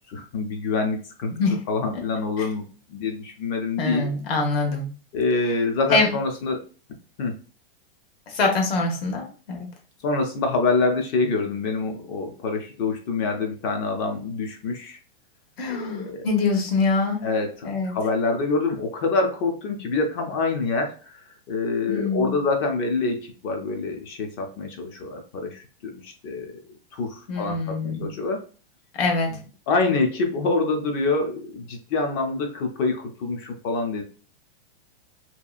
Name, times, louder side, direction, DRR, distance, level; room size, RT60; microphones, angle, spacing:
voice 1, 0.1-1.3 1.7-2.6 2.9-4.1 5.1-6.6 7.2-7.3 10.0-15.0 15.7-16.3 17.2-26.5 26.9-28.4 29.7-34.0, left 3 dB, 25° left, 4 dB, 0.4 m, -26 dB
voice 2, 3.8-4.9 5.9-6.1 8.3-9.7 15.6-17.2 17.6-17.9 21.9-22.4 27.3-28.1 29.0-29.4, left 3 dB, 80° left, 1 dB, 1.1 m, -24 dB
2.7 x 2.3 x 2.4 m, 0.37 s
hypercardioid pair, 145°, 30 cm